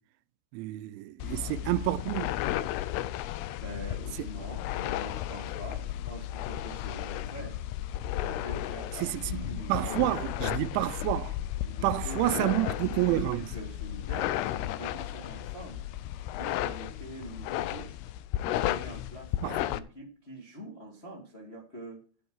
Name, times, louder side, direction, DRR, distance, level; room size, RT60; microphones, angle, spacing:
voice 1, 0.5-2.3 9.0-11.4 11.8-13.5 19.4-19.6, right 17 dB, 90° right, 3.1 m, -29 dB
sound 1, 1.2-19.8, left 13 dB, 80° left, 2.4 m, -34 dB
voice 2, 1.2-1.8 3.6-7.6 8.3-9.9 10.2-10.3 11.6-15.8 16.3-18.0 18.5-22.0, right 1 dB, 35° left, 1.0 m, -44 dB
10.0 x 9.3 x 4.7 m
omnidirectional pair, 5.3 m